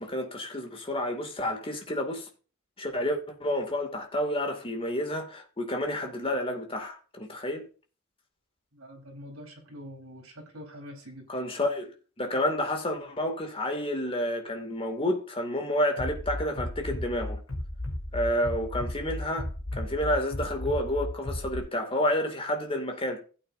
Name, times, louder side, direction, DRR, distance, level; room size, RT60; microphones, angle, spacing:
voice 1, 0.0-2.3 2.8-7.7 11.3-11.9 12.2-17.4 18.1-23.2, left 1 dB, 25° left, 2.4 m, -30 dB
voice 2, 8.7-11.3, equal, 70° right, 4.2 m, -45 dB
Bass drum, 16.0-21.6, left 1 dB, 75° left, 4.2 m, -34 dB
16.0 x 8.7 x 2.7 m
head